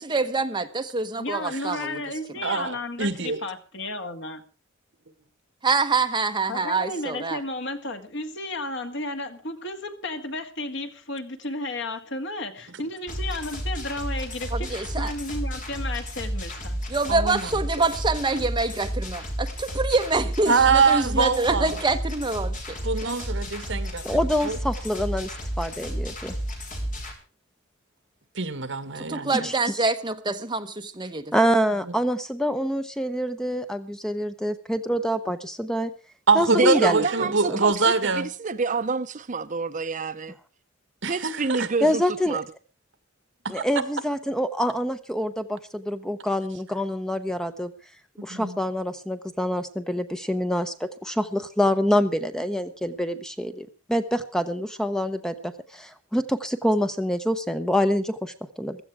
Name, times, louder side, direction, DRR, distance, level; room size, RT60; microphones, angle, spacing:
voice 1, 0.0-2.0 2.3-2.4 5.6-7.4 14.5-15.1 16.9-23.1 28.9-31.3, right 3 dB, 25° right, 1.1 m, -26 dB
voice 2, 1.2-4.4 6.5-16.8, left 2 dB, 60° left, 1.9 m, -33 dB
voice 3, 2.4-3.4 17.1-17.5 20.5-21.7 22.8-24.0 24.4-24.6 28.4-29.5 36.3-38.3 41.0-41.7 43.5-43.6 48.2-48.6, right 4 dB, 65° right, 1.8 m, -23 dB
sound 1, 13.1-27.1, equal, 40° left, 3.9 m, -32 dB
voice 4, 24.0-26.3 29.4-29.5 31.3-35.9 36.3-37.6 41.8-42.4 43.5-47.7 48.2-58.8, equal, 5° left, 0.8 m, -26 dB
voice 5, 36.5-40.3 41.1-42.4, right 4 dB, 40° right, 0.7 m, -28 dB
16.0 x 13.5 x 4.8 m
head